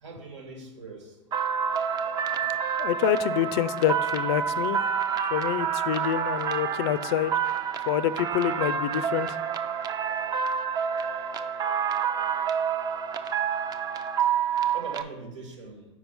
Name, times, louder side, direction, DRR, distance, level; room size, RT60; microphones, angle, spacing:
voice 1, 0.0-1.2 14.7-15.8, right 4 dB, 85° right, 2 dB, 1.5 m, -41 dB
sound 1, 1.3-15.0, right 7 dB, 25° right, 0.4 m, -28 dB
voice 2, 2.8-4.8 5.3-7.3 7.9-9.3, left 12 dB, 60° left, 15 dB, 0.4 m, -27 dB
5.0 x 4.6 x 5.3 m, 1.1 s
hypercardioid pair, 105°, 15 cm